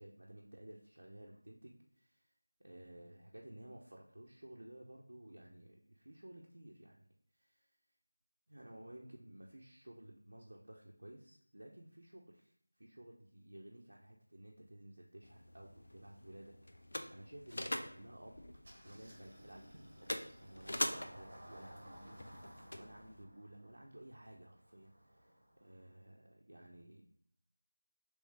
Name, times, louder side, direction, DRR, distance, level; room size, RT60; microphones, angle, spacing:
voice 1, 0.0-2.3 2.6-7.0 7.3-7.7 8.5-18.4 18.8-27.0, right 1 dB, 90° right, -2 dB, 0.5 m, -55 dB
sound 1, 15.2-23.2, left 1 dB, 65° left, 0.5 m, -45 dB
Engine starting, 18.6-26.0, right 1 dB, 30° right, 1.1 m, -57 dB
3.1 x 3.1 x 3.2 m, 0.66 s
figure-of-eight pair, 175°, 0 cm